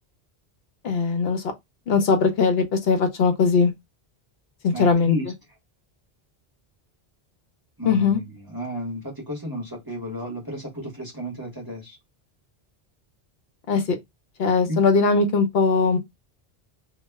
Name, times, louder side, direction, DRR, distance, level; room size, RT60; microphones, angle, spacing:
voice 1, 0.8-1.4 1.9-3.7 4.6-5.2 7.8-8.2 13.7-14.0 14.4-16.0, left 4 dB, 75° left, 0.8 m, -20 dB
voice 2, 4.7-5.3 7.8-12.0 14.7-14.8, equal, 25° right, 0.8 m, -32 dB
2.2 x 2.0 x 3.2 m
omnidirectional pair, 1.0 m